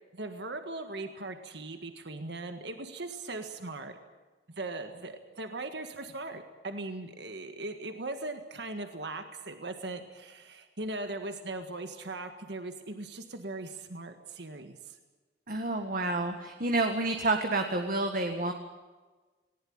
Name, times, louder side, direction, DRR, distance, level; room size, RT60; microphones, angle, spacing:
voice 1, 0.1-4.0 4.6-15.0, right 2 dB, 65° right, 6 dB, 1.7 m, -39 dB
voice 2, 15.5-18.5, right 2 dB, 50° right, 5 dB, 1.7 m, -29 dB
20.0 x 19.0 x 8.9 m, 1.3 s
head